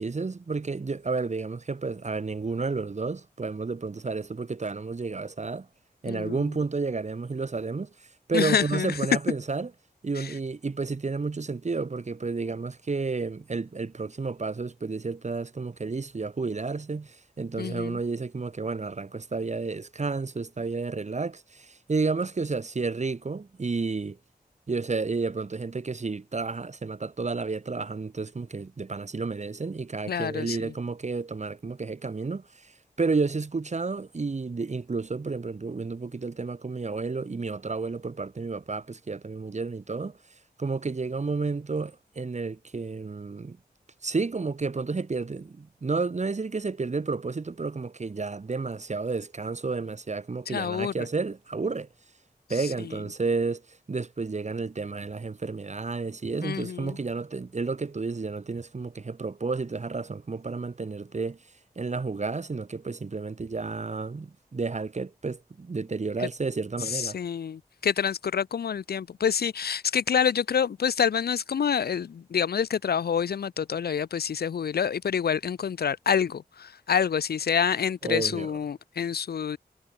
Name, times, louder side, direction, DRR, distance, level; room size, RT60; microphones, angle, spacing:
voice 1, 0.0-5.7 6.0-7.9 8.3-9.7 10.0-24.2 24.7-32.7 33.0-40.1 40.6-43.6 44.0-51.9 52.5-53.6 53.9-61.4 61.8-67.2 78.0-78.5, right 4 dB, 45° right, 1.1 m, -31 dB
voice 2, 6.1-6.4 8.3-8.9 10.2-10.3 17.6-18.0 30.1-30.7 50.5-50.9 56.4-57.0 66.8-79.6, left 7 dB, 80° left, 0.6 m, -27 dB
cardioid pair, 50°, 16 cm